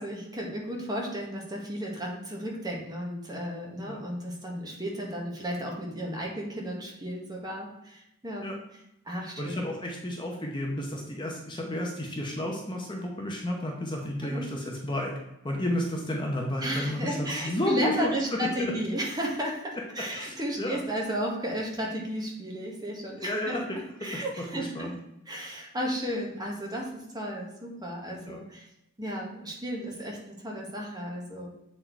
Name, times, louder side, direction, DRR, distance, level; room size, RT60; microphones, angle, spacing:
voice 1, 0.0-8.5 9.0-9.6 14.2-14.4 16.6-24.9 25.3-28.7 29.0-31.5, equal, 20° right, -1 dB, 1.5 m, -34 dB
voice 2, 9.4-15.1 15.4-18.5 20.1-20.8 23.1-24.9 25.4-25.5 28.2-28.4, left 1 dB, 25° left, 0 dB, 0.9 m, -32 dB
7.5 x 4.4 x 4.5 m, 0.82 s
head